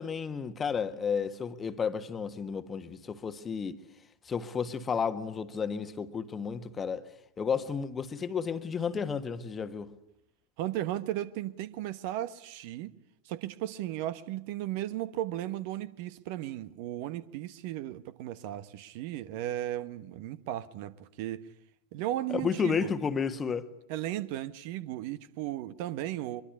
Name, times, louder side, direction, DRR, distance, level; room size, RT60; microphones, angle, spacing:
voice 1, 0.0-3.8 4.2-7.1 7.4-9.9 22.3-23.7, left 6 dB, 20° left, 1.5 m, -32 dB
voice 2, 10.6-12.9 13.2-21.5 21.9-22.9 23.9-26.4, right 13 dB, 45° right, 1.2 m, -35 dB
24.0 x 23.5 x 9.7 m
figure-of-eight pair, 90°, 0 cm